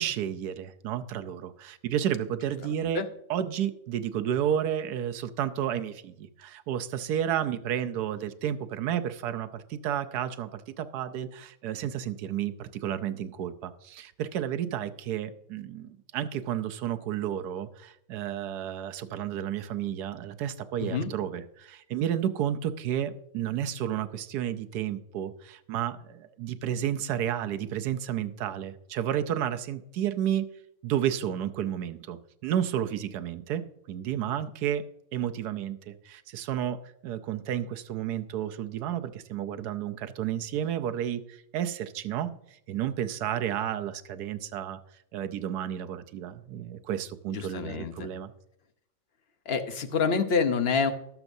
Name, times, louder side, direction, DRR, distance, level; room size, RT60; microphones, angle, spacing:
voice 1, 0.0-3.0 3.3-30.5 30.8-34.8 35.1-42.3 42.7-44.8 45.1-48.3, right 10 dB, 80° right, 10 dB, 1.2 m, -31 dB
voice 2, 20.8-21.1 47.3-48.1 49.5-50.9, left 5 dB, 50° left, 8 dB, 0.9 m, -27 dB
18.5 x 7.0 x 2.6 m, 0.76 s
omnidirectional pair, 1.7 m